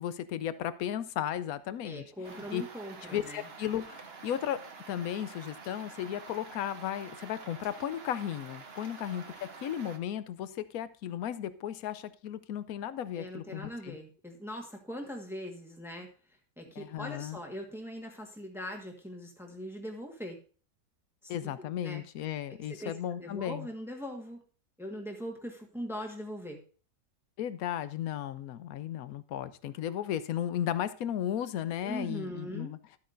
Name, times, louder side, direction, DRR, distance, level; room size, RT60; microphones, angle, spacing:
voice 1, 0.0-2.0 2.3-2.6 3.0-4.6 4.9-14.0 16.8-17.4 21.3-23.7 27.4-32.8, left 10 dB, 70° left, 14 dB, 1.0 m, -35 dB
voice 2, 1.8-3.5 13.1-16.1 16.6-20.4 21.2-22.0 22.7-22.9 23.2-24.4 24.8-26.6 31.8-32.8, equal, ahead, 2 dB, 1.3 m, -41 dB
sound 1, 2.2-10.0, right 5 dB, 45° right, 1.1 m, -48 dB
12.5 x 8.4 x 2.6 m, 0.37 s
omnidirectional pair, 1.7 m